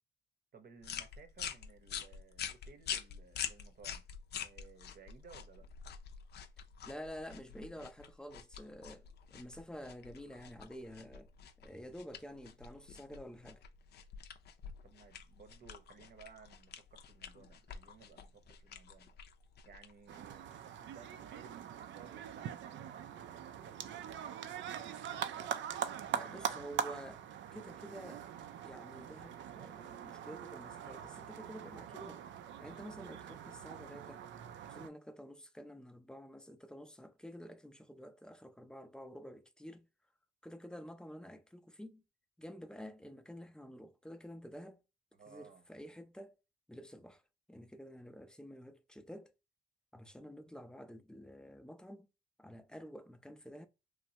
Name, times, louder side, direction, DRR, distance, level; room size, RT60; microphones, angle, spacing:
voice 1, 0.5-4.1 4.4-5.7 14.8-19.1 19.6-26.6 45.1-45.7, right 6 dB, 50° right, 0.8 m, -58 dB
sound 1, 0.8-20.4, left 8 dB, 55° left, 0.5 m, -47 dB
voice 2, 6.8-11.3 11.6-13.6 26.1-27.2 27.5-28.2 28.6-32.2 32.6-34.3 34.7-39.9 40.4-42.0 42.4-44.8 45.3-46.4 46.7-47.2 47.5-49.3 49.9-52.1 52.4-53.7, equal, 5° left, 0.4 m, -50 dB
sound 2, 20.1-34.9, right 9 dB, 70° right, 0.4 m, -43 dB
3.1 x 2.2 x 2.7 m
cardioid pair, 90°, 20 cm